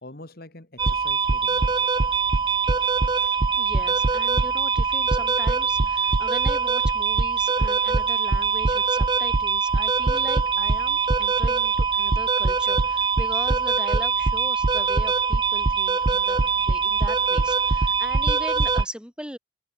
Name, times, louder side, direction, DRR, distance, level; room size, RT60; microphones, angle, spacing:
voice 1, 0.0-1.7 2.8-3.2, left 1 dB, 50° left, 2.2 m, -45 dB
sound 1, 0.8-18.8, right 4 dB, 20° right, 0.4 m, -22 dB
voice 2, 3.1-16.4 16.7-19.4, equal, 5° right, 3.5 m, -40 dB
head